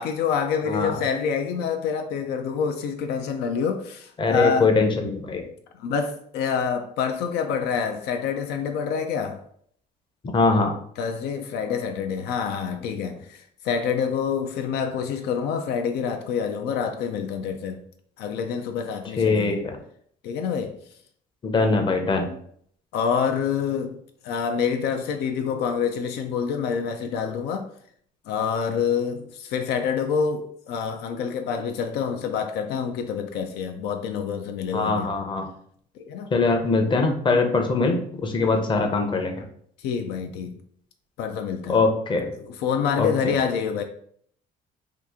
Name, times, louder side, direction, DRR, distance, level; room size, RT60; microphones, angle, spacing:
voice 1, 0.0-4.7 5.8-9.4 11.0-17.8 18.2-19.6 20.2-20.8 22.9-24.0 24.2-27.7 28.3-35.1 36.0-36.3 39.8-40.6 41.2-41.8 42.5-43.8, left 6 dB, 80° left, 0.4 m, -27 dB
voice 2, 0.7-1.0 4.2-5.4 10.3-10.8 19.2-19.8 21.4-22.3 34.7-35.5 36.3-39.5 41.7-42.4 43.0-43.3, left 3 dB, 30° left, 0.6 m, -22 dB
2.8 x 2.4 x 3.5 m
cardioid pair, 110°, 17 cm